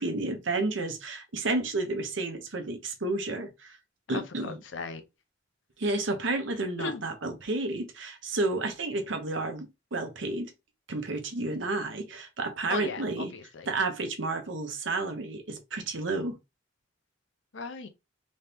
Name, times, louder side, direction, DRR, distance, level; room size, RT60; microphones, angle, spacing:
voice 1, 0.0-3.8 4.1-4.6 5.8-10.5 10.9-13.3 13.7-16.4, right 2 dB, 75° right, 0.9 m, -31 dB
voice 2, 4.1-5.0 6.8-7.0 12.7-13.7 17.5-17.9, left 4 dB, 75° left, 0.7 m, -37 dB
3.2 x 2.8 x 3.4 m
head